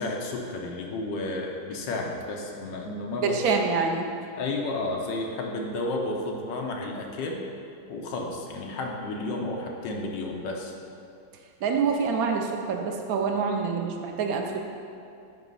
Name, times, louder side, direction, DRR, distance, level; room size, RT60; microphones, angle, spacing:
voice 1, 0.0-3.4 4.3-7.4 7.9-10.7, left 2 dB, 70° left, 0 dB, 1.3 m, -32 dB
voice 2, 3.2-4.1 11.6-14.6, right 5 dB, 75° right, 2 dB, 0.8 m, -26 dB
9.0 x 3.1 x 5.4 m, 2.5 s
omnidirectional pair, 2.2 m